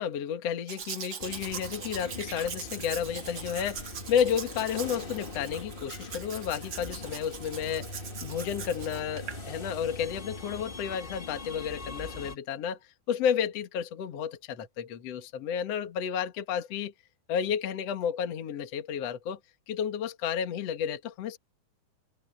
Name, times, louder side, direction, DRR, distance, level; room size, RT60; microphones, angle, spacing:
voice 1, 0.0-12.8 13.1-16.9 17.3-19.4 19.7-21.4, left 8 dB, 50° left, 2.4 m, -31 dB
Domestic sounds home sounds, 0.7-9.4 10.0-10.1, right 7 dB, 55° right, 1.2 m, -41 dB
sound 1, 1.2-12.3, left 2 dB, 65° left, 0.5 m, -42 dB
omnidirectional pair, 4.3 m